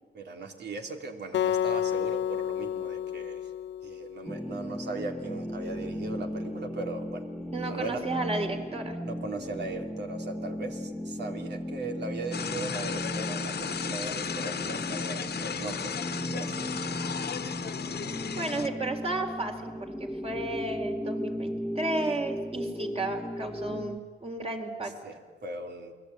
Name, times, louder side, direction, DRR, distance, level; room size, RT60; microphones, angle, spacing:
voice 1, 0.1-3.5 3.8-7.2 7.7-8.0 9.0-15.9 16.3-16.9 25.0-25.9, right 3 dB, 65° right, 4 dB, 3.2 m, -38 dB
Acoustic guitar, 1.3-4.6, left 10 dB, 80° left, 0.7 m, -30 dB
sound 1, 4.2-24.0, equal, ahead, 1.5 m, -36 dB
voice 2, 7.5-9.0 18.4-25.0, right 2 dB, 30° right, 4 dB, 4.2 m, -33 dB
sound 2, 12.3-18.7, left 7 dB, 60° left, 1.4 m, -34 dB
28.0 x 21.0 x 9.5 m, 1.5 s
cardioid pair, 95°, 18 cm